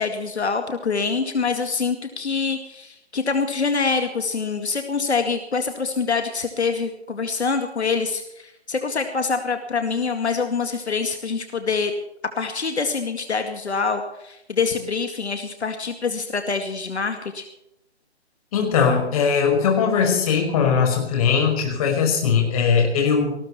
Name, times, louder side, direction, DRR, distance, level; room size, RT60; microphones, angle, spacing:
voice 1, 0.0-11.9 12.4-17.5, left 5 dB, 75° left, 6 dB, 2.3 m, -25 dB
voice 2, 18.5-23.4, left 6 dB, 30° left, 2 dB, 5.4 m, -20 dB
19.5 x 15.5 x 4.4 m, 0.87 s
hypercardioid pair, 150°, 33 cm